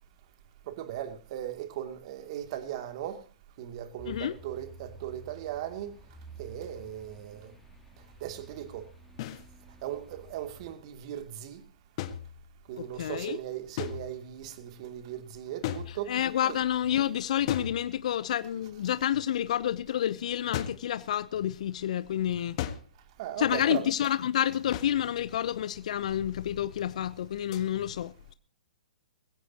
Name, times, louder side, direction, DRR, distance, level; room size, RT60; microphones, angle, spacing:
voice 1, 0.7-3.2 3.6-6.0 6.4-7.5 8.2-8.9 9.8-11.6 12.7-16.2 23.2-23.8, right 11 dB, 50° right, 2.7 m, -38 dB
sound 1, 4.0-10.7, right 2 dB, 5° left, 3.4 m, -51 dB
sound 2, 9.2-9.5 12.0-12.8 13.8-14.4 15.6-16.4 17.5-18.3 20.5-20.9 22.6-23.1 24.7-25.1 27.5-27.7, left 11 dB, 45° left, 1.7 m, -37 dB
voice 2, 12.8-13.4 15.9-22.6 23.4-28.3, left 10 dB, 60° left, 0.8 m, -29 dB
21.0 x 16.5 x 3.0 m
hypercardioid pair, 125°, 4 cm